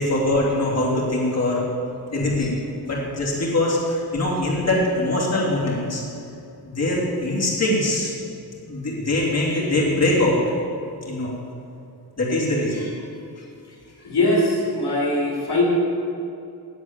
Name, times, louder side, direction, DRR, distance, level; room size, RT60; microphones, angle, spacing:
voice 1, 0.0-1.6 2.1-6.0 6.6-8.1 8.7-10.4 11.0-11.4 12.2-13.1 13.4-13.5, left 1 dB, 40° left, -5 dB, 2.9 m, -22 dB
voice 2, 14.0-15.6, left 2 dB, 65° left, -5 dB, 2.7 m, -21 dB
8.2 x 8.0 x 9.0 m, 2.6 s
wide cardioid pair, 135°, 41 cm